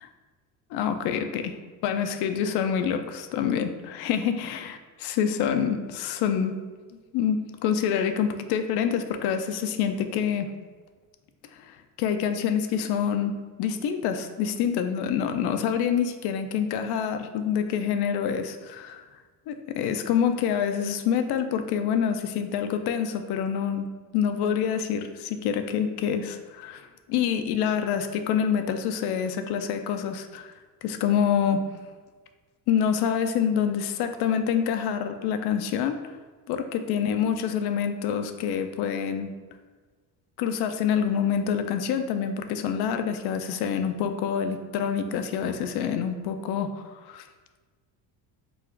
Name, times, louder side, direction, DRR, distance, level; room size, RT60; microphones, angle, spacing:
voice 1, 0.7-1.6 1.8-6.6 7.1-10.5 11.6-19.0 19.5-30.5 30.8-31.7 32.7-36.0 36.5-39.3 40.4-47.3, left 8 dB, 65° left, 8 dB, 0.5 m, -27 dB
3.8 x 2.4 x 4.4 m, 1.4 s
cardioid pair, 110°, 43 cm